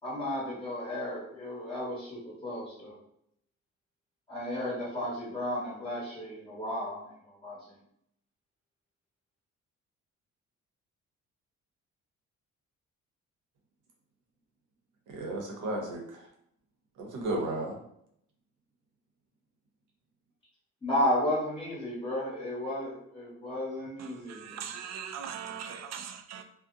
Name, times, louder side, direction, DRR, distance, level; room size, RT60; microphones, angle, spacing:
voice 1, 0.0-3.0 4.3-7.1 7.4-7.8 20.8-24.6, left 1 dB, 15° left, 1.2 m, -33 dB
voice 2, 15.1-16.3 17.0-17.8, right 1 dB, 85° right, 0.8 m, -34 dB
voice 3, 24.0-26.4, right 8 dB, 60° right, 0.4 m, -40 dB
2.7 x 2.1 x 2.5 m
cardioid pair, 90°, 30 cm